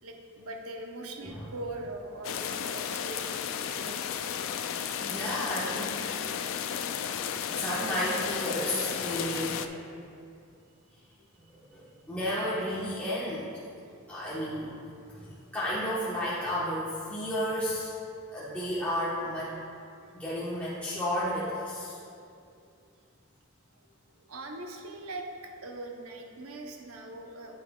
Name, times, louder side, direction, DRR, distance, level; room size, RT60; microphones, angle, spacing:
voice 1, 0.0-4.4 11.2-11.3 13.8-13.9 15.2-15.3 20.0-20.1 22.6-22.7 24.3-27.6, right 2 dB, 90° right, 2 dB, 0.8 m, -41 dB
sound 1, 2.2-9.7, left 8 dB, 65° left, 0.3 m, -33 dB
voice 2, 4.9-6.3 7.5-10.0 11.4-13.5 14.1-14.8 15.0-17.9 18.3-19.5 20.1-22.0, equal, 5° left, -10 dB, 1.0 m, -32 dB
9.2 x 8.0 x 2.3 m, 2.5 s
head